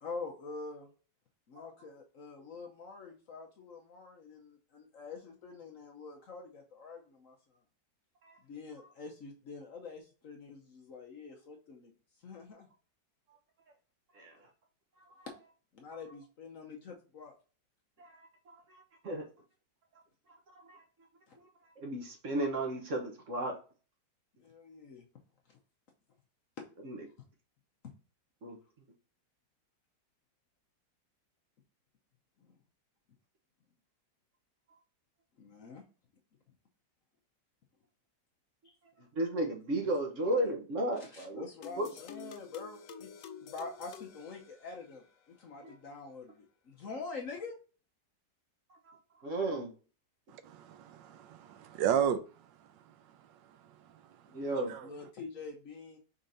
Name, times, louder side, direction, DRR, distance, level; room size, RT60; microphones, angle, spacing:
voice 1, 0.0-0.9 1.5-7.6 8.4-11.9 12.2-12.7 15.7-17.3 21.3-21.4 24.4-25.0 25.5-25.6 26.6-26.7 27.8-27.9 32.4-32.5 35.4-35.8 38.6-38.7 41.0-43.1 43.4-47.6 54.2-56.0, left 4 dB, 55° left, 1.0 m, -46 dB
voice 2, 18.0-19.2 20.5-20.8 21.8-23.5 26.8-27.0 28.4-28.6 39.1-41.4 41.8-41.9 45.6-45.7 48.8-49.7 54.3-54.8, right 1 dB, 50° right, 1.2 m, -34 dB
sound 1, 41.6-45.1, left 7 dB, 85° left, 0.6 m, -49 dB
voice 3, 50.3-52.2 54.7-54.9, right 8 dB, 85° right, 1.3 m, -32 dB
5.4 x 3.7 x 2.6 m
omnidirectional pair, 2.0 m